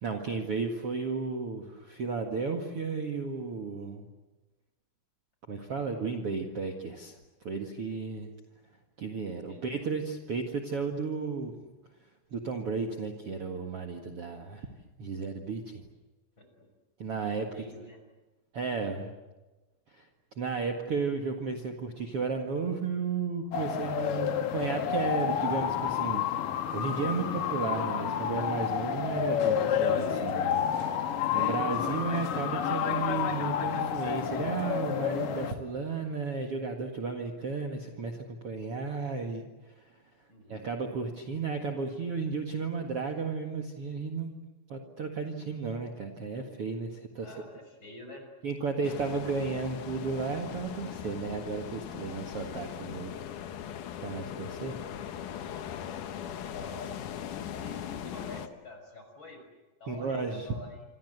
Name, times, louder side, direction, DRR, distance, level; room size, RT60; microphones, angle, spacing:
voice 1, 0.0-4.1 5.5-8.3 9.0-11.5 12.3-14.7 15.0-15.8 17.0-17.6 18.5-19.1 19.9-20.1 20.3-30.6 31.0-40.0 40.5-44.3 44.7-47.3 48.4-53.2 54.0-54.8 59.9-60.5, right 4 dB, 65° right, 3 dB, 1.4 m, -34 dB
voice 2, 9.3-9.9 16.4-16.7 17.5-18.0 40.3-40.7 47.2-48.3 56.4-57.0 57.5-59.4 59.8-60.8, left 2 dB, 25° left, 4 dB, 6.4 m, -47 dB
sound 1, 23.5-35.5, left 9 dB, 60° left, 2.4 m, -30 dB
sound 2, 48.8-58.5, left 9 dB, 85° left, 1.7 m, -40 dB
27.0 x 26.5 x 8.1 m, 1.1 s
omnidirectional pair, 5.9 m